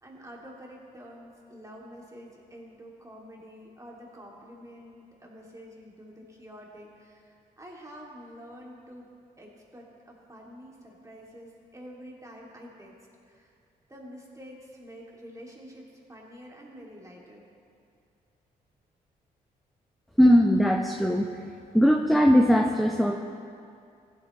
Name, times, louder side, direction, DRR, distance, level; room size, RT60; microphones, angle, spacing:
voice 1, 0.0-9.1 9.4-12.9 13.3-13.5 13.9-17.5, equal, 20° right, -3 dB, 2.7 m, -47 dB
voice 2, 20.2-21.4 21.7-23.1, equal, ahead, 2 dB, 0.8 m, -20 dB
16.0 x 8.0 x 3.3 m, 2.4 s
supercardioid pair, 50°, 17 cm